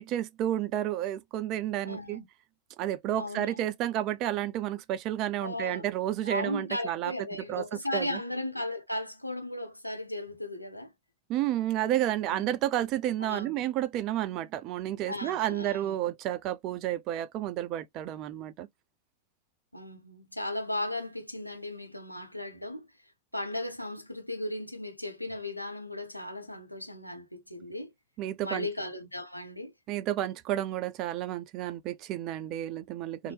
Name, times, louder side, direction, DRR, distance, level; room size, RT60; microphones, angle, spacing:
voice 1, 0.0-2.2 2.8-7.1 7.5-7.6 7.9-8.2 11.3-18.7 28.2-28.7 29.9-33.3, right 12 dB, 40° right, 0.4 m, -31 dB
voice 2, 1.8-2.2 3.2-3.6 5.4-5.9 6.2-10.9 12.2-12.6 13.2-13.5 15.1-16.1 19.7-22.9 23.3-27.9 28.4-29.7 33.2-33.3, left 1 dB, 90° left, 0.6 m, -36 dB
2.7 x 2.1 x 3.2 m
figure-of-eight pair, 90°, 0 cm